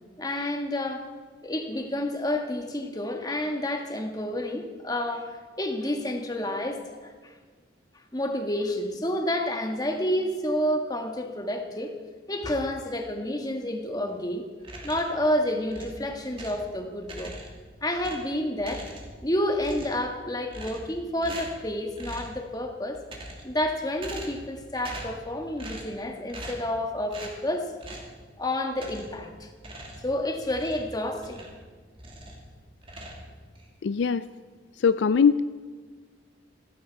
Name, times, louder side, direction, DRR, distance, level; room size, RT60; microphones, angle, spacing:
voice 1, 0.2-1.1 1.4-7.3 8.1-11.9 12.3-14.4 14.8-17.3 17.8-18.9 19.2-23.0 23.4-27.7 28.4-29.5 30.0-31.4, left 1 dB, 20° left, 4 dB, 1.5 m, -29 dB
sound 1, 14.6-15.2 15.7-16.7 17.0-17.7 18.0-19.3 19.5-20.1 20.5-21.0 21.2-21.6 22.0-22.4 22.9-23.6 24.0-24.5 24.8-25.2 25.6-26.0 26.3-26.7 27.1-27.4 27.8-28.1 28.7-29.2 29.6-31.6 32.0-32.5 32.8-33.7, right 1 dB, 30° right, 2.6 m, -41 dB
voice 2, 33.8-34.2 34.8-35.4, left 6 dB, 65° left, 14 dB, 0.4 m, -21 dB
17.0 x 16.0 x 4.6 m, 1.5 s
head